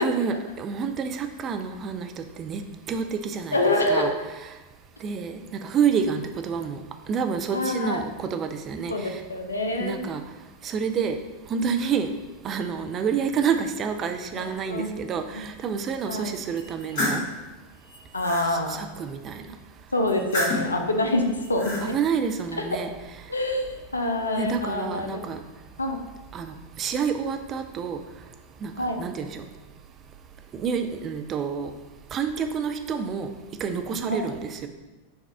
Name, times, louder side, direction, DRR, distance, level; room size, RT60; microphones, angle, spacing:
voice 1, 0.0-2.6 2.9-3.6 3.9-4.1 4.4-4.5 5.0-6.8 7.1-9.2 9.8-10.2 10.6-11.2 11.5-12.1 12.4-17.2 18.5-19.4 21.8-22.9 24.4-25.4 26.3-28.0 28.6-29.4 30.5-31.7 32.1-33.3 33.6-34.7, right 6 dB, 30° right, 6 dB, 0.3 m, -28 dB
voice 2, 3.5-4.1 7.5-8.0 8.9-10.0 14.4-14.9 15.3-15.4 16.1-16.3 18.1-18.8 19.9-21.9 23.3-23.7 23.9-25.2 25.8-26.0 28.8-29.0 34.1-34.3, left 1 dB, 80° left, 4 dB, 0.5 m, -26 dB
sound 1, 16.6-17.3 17.8-18.5 20.1-20.8 21.3-21.8, left 1 dB, 45° left, 1.4 m, -29 dB
5.1 x 2.4 x 3.4 m, 1.1 s
figure-of-eight pair, 90°, 0 cm